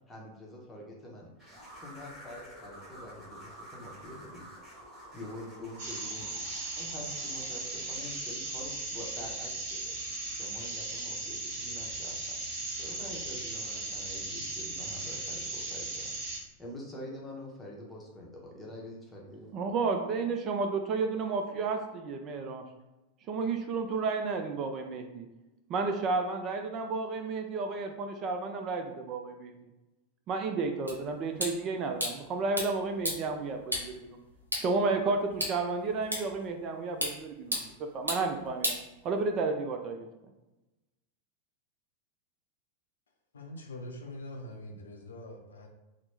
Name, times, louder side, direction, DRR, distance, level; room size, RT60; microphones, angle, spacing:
voice 1, 0.1-1.3 1.7-4.5 5.1-6.3 6.7-9.9 10.3-12.4 12.7-16.1 16.6-19.6, left 1 dB, 10° left, -3 dB, 0.8 m, -46 dB
sound 1, 1.4-8.1, right 1 dB, 10° right, 1.4 m, -50 dB
sound 2, 5.8-16.4, right 2 dB, 50° right, 0.8 m, -37 dB
voice 2, 19.5-22.6 23.3-25.3 25.7-29.5 30.3-34.2 34.6-38.7 39.0-40.1, right 4 dB, 35° right, 4 dB, 0.3 m, -32 dB
sound 3, 30.9-39.5, equal, 85° right, 0.7 m, -38 dB
voice 3, 43.3-45.7, left 1 dB, 70° left, 2 dB, 0.4 m, -43 dB
2.9 x 2.0 x 3.3 m, 1.0 s
figure-of-eight pair, 90°, 0 cm